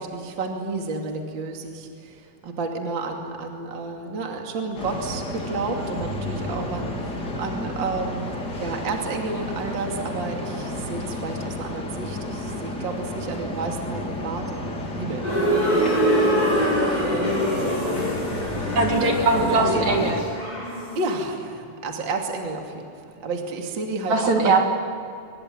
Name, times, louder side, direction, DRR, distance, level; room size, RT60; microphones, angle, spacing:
voice 1, 0.0-15.3 17.1-18.3 19.6-19.8 20.9-24.6, right 3 dB, 35° right, 2 dB, 2.8 m, -31 dB
sound 1, 4.8-20.1, left 1 dB, 30° left, 3.0 m, -31 dB
sound 2, 15.2-21.1, equal, 10° left, 6.3 m, -24 dB
voice 2, 18.7-20.2 24.1-24.6, right 3 dB, 55° right, 2 dB, 3.4 m, -21 dB
24.0 x 21.0 x 9.4 m, 2.5 s
omnidirectional pair, 4.3 m